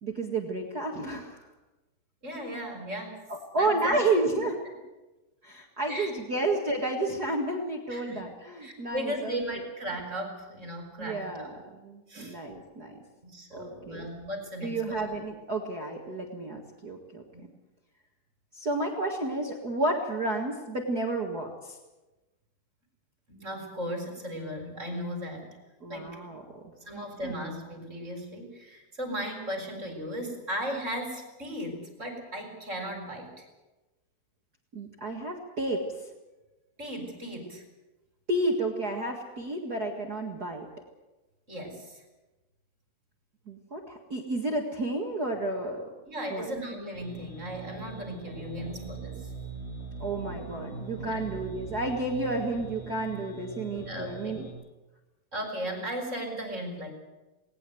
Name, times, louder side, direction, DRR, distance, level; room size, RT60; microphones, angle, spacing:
voice 1, 0.0-1.4 3.3-4.6 5.4-9.7 11.0-11.5 11.8-13.0 13.5-14.0 14.6-17.2 18.5-21.8 25.8-26.4 26.9-27.3 34.7-35.8 38.3-40.7 43.5-45.8 46.3-46.5 50.0-54.4, right 2 dB, 35° right, 1 dB, 1.7 m, -31 dB
voice 2, 2.2-3.2 3.6-4.1 4.3-4.5 5.9-6.1 7.9-8.2 8.6-11.5 12.1-12.4 13.2-15.0 17.3-17.5 23.3-25.6 25.9-26.1 26.9-33.5 36.8-37.6 41.5-42.0 46.1-49.3 51.0-51.2 53.9-54.3 55.3-56.9, equal, 20° right, 3 dB, 4.1 m, -36 dB
sound 1, 46.9-54.5, right 4 dB, 10° left, 7.3 m, -41 dB
19.5 x 19.0 x 7.9 m, 1.1 s
omnidirectional pair, 4.2 m